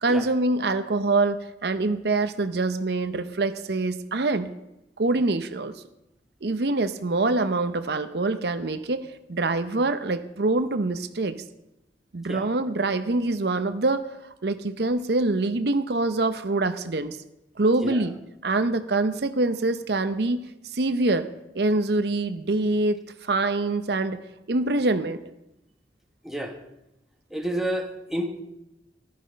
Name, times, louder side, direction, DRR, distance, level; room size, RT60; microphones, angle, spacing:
voice 1, 0.0-4.5 5.0-5.7 6.4-11.4 12.1-14.1 14.4-17.2 17.6-18.1 18.4-21.3 21.5-24.2 24.5-25.2, right 2 dB, 65° right, 10 dB, 0.7 m, -25 dB
voice 2, 26.2-26.6 27.3-28.4, right 1 dB, ahead, 2 dB, 1.3 m, -30 dB
15.0 x 11.5 x 5.2 m, 0.89 s
head